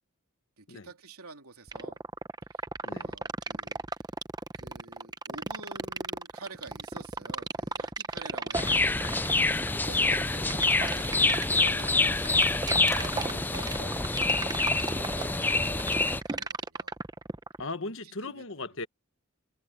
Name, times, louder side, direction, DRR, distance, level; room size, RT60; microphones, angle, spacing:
voice 1, 0.6-2.0 2.5-3.8 4.5-9.4 9.7-11.1 11.5-12.5 12.9-17.0 18.0-18.7, right 4 dB, 85° right, 3.1 m, -48 dB
sound 1, 1.7-17.6, right 3 dB, 20° right, 0.7 m, -34 dB
voice 2, 2.8-3.1 13.3-13.5 17.6-18.9, left 3 dB, 60° left, 1.4 m, -38 dB
sound 2, 8.5-16.2, left 3 dB, 10° left, 0.3 m, -26 dB
head